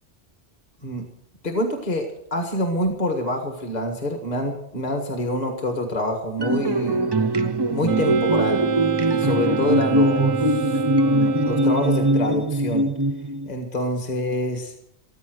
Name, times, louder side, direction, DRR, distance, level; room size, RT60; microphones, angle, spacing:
voice 1, 1.4-7.1 7.7-8.6 9.1-12.9 13.5-14.7, left 1 dB, 35° left, 4 dB, 1.8 m, -26 dB
sound 1, 6.4-13.5, right 1 dB, 30° right, 0.5 m, -21 dB
Wind instrument woodwind instrument, 7.8-12.5, right 6 dB, 90° right, 1.1 m, -28 dB
14.0 x 14.0 x 6.5 m, 0.76 s
omnidirectional pair, 1.2 m